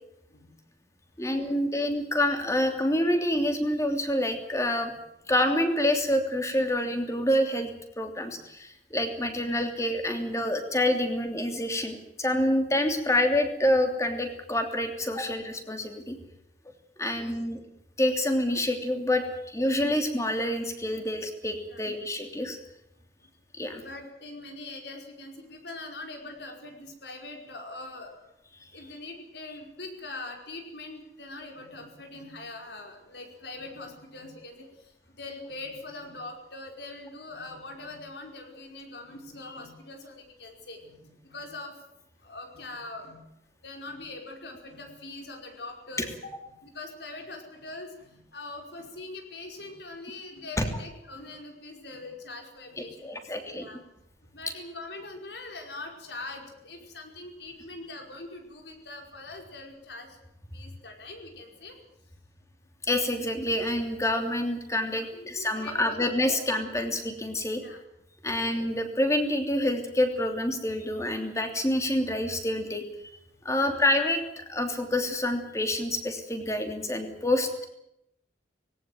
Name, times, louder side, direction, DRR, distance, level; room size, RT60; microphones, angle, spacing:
voice 1, 1.2-4.9 5.3-16.2 17.0-17.6 18.0-22.6 23.5-23.8 28.6-28.7 50.6-50.7 53.0-53.6 62.9-67.6 68.2-72.8 73.4-77.6, left 1 dB, 15° left, 5 dB, 3.0 m, -27 dB
voice 2, 23.7-28.3 28.7-41.7 42.2-43.2 43.6-53.8 54.2-60.2 60.5-61.8 65.1-66.4 66.7-66.8 67.6-67.8 73.5-73.7 74.8-74.9, left 2 dB, 75° left, 3 dB, 5.1 m, -42 dB
19.5 x 17.5 x 9.3 m, 0.81 s
head